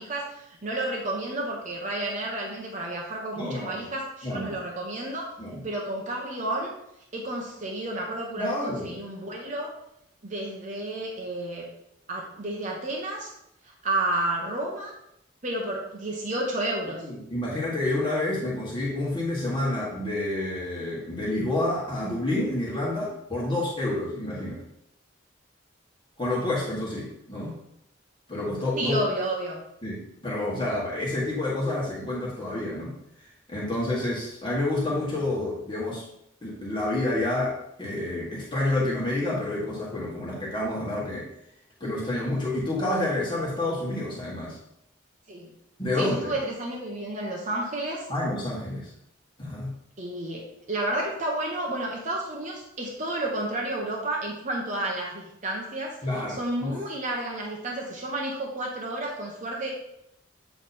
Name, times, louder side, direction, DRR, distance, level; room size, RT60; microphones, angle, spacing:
voice 1, 0.0-5.3 5.6-6.7 7.1-9.7 10.2-11.7 12.1-13.3 13.6-14.9 15.4-17.1 28.8-29.6 45.3-45.5 46.0-48.1 50.0-56.0 56.3-59.7, right 1 dB, 40° right, -1 dB, 1.0 m, -31 dB
voice 2, 3.3-3.8 4.2-4.5 5.4-5.6 8.4-9.0 17.0-24.6 26.2-27.6 28.3-29.0 29.8-33.0 33.5-36.0 36.4-41.3 41.8-44.6 45.8-46.3 48.1-48.9 49.4-49.7 56.0-56.7, left 1 dB, 25° left, -6 dB, 1.7 m, -29 dB
8.1 x 3.3 x 4.2 m, 0.79 s
head